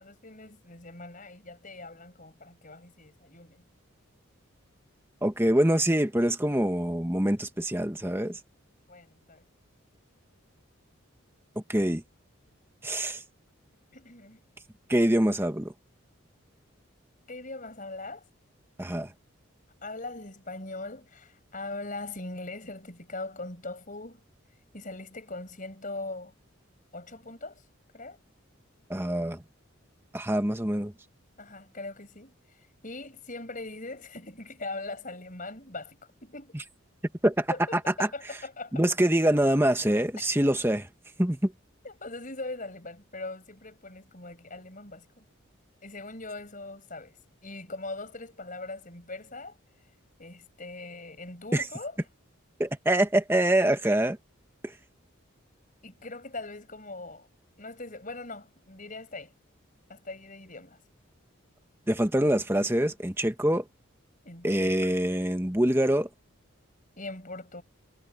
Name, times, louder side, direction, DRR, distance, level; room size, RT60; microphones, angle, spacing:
voice 1, 0.0-3.7 8.9-9.4 13.9-14.4 17.3-18.2 19.8-24.2 24.7-26.3 26.9-27.6 27.9-28.2 31.4-32.3 32.8-36.6 37.5-38.8 39.1-39.2 41.8-45.2 45.8-47.1 47.4-49.5 50.2-52.0 55.8-57.3 57.6-59.3 59.9-60.8 64.2-65.0 67.0-67.6, left 2 dB, 40° left, 6.5 m, -41 dB
voice 2, 5.2-8.4 11.7-12.0 12.8-13.2 14.9-15.7 18.8-19.1 28.9-29.4 30.1-30.9 37.2-37.5 38.0-38.1 38.7-40.9 41.2-41.5 51.5-51.6 52.6-54.2 61.9-63.6 64.4-66.1, right 1 dB, 10° right, 1.4 m, -25 dB
head